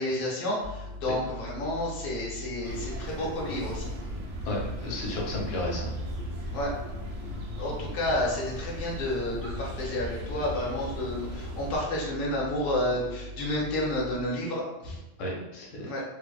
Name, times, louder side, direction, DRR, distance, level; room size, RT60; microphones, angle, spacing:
voice 1, 0.0-3.9 6.5-6.7 7.6-15.0 15.8-16.0, left 1 dB, 55° left, -4 dB, 0.8 m, -30 dB
sound 1, 0.6-14.2, left 1 dB, 70° right, 0.8 m, -41 dB
sound 2, 2.6-11.8, equal, 90° right, 1.0 m, -38 dB
voice 2, 4.4-5.9 15.2-15.9, left 1 dB, 85° left, -3 dB, 1.0 m, -33 dB
2.6 x 2.0 x 2.3 m, 0.97 s
omnidirectional pair, 1.3 m